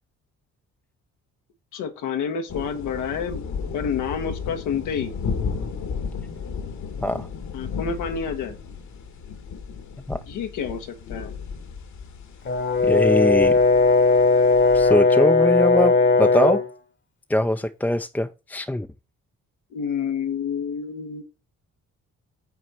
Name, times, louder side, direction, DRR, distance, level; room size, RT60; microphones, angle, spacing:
voice 1, 1.7-3.4 3.7-5.1 7.5-8.6 10.3-11.3 19.7-21.2, left 6 dB, 90° left, 1.2 m, -29 dB
sound 1, 2.5-14.9, left 5 dB, 70° left, 1.5 m, -34 dB
Brass instrument, 12.5-16.7, left 3 dB, 40° left, 1.1 m, -18 dB
voice 2, 12.8-13.6 14.7-16.6 17.3-18.9, left 1 dB, 5° left, 0.4 m, -22 dB
6.0 x 4.1 x 5.9 m
cardioid pair, 90°, 30 cm